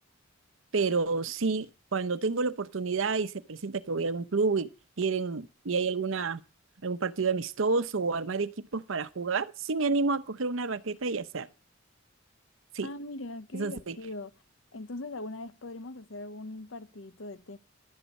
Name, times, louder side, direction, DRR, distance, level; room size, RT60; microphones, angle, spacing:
voice 1, 0.7-1.7 1.9-4.7 5.0-6.4 6.8-11.5 12.7-12.9 13.5-14.0, right 4 dB, 75° right, 0.8 m, -29 dB
voice 2, 12.8-14.3 14.7-17.6, left 2 dB, 70° left, 0.9 m, -40 dB
11.5 x 10.0 x 5.3 m
head